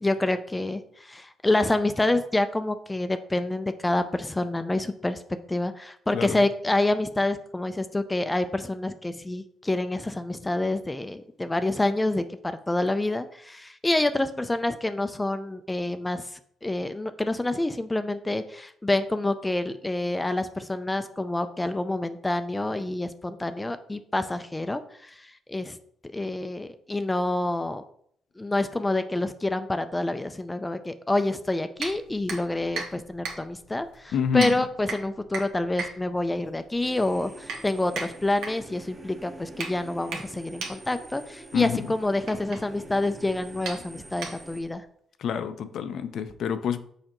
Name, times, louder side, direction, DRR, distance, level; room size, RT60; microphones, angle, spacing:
voice 1, 0.0-5.2 5.5-25.8 26.1-27.8 28.4-44.9, left 2 dB, 15° left, 10 dB, 0.4 m, -27 dB
sound 1, 31.8-44.8, right 4 dB, 85° right, 1.1 m, -39 dB
voice 2, 34.1-34.6 41.5-41.8 45.2-46.8, left 7 dB, 70° left, 11 dB, 0.5 m, -27 dB
sound 2, 36.8-44.6, right 2 dB, 25° right, 0.9 m, -46 dB
6.5 x 4.9 x 3.0 m, 0.65 s
cardioid pair, 90°, 0 cm